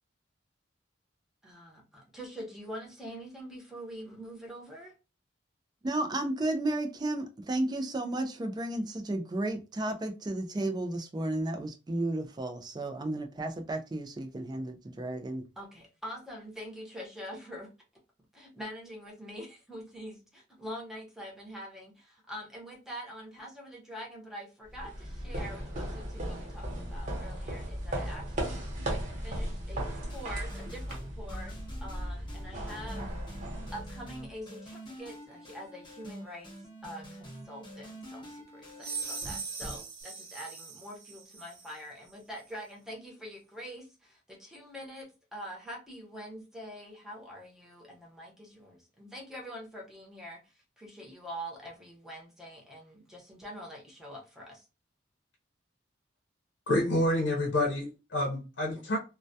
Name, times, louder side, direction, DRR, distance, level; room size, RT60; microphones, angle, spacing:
voice 1, 1.4-4.9 15.6-17.7 18.3-28.6 29.2-31.5 31.8-33.1 33.7-36.5 36.8-54.7, equal, 5° right, 0.7 m, -45 dB
voice 2, 5.8-15.4, right 1 dB, 20° right, 0.4 m, -33 dB
sound 1, 24.7-34.3, right 1 dB, 45° right, 0.8 m, -36 dB
sound 2, 30.1-40.0, equal, 25° left, 1.0 m, -47 dB
sound 3, 38.8-41.8, right 5 dB, 90° right, 0.7 m, -40 dB
voice 3, 56.7-59.0, left 1 dB, 75° left, 0.7 m, -28 dB
2.2 x 2.2 x 2.6 m
head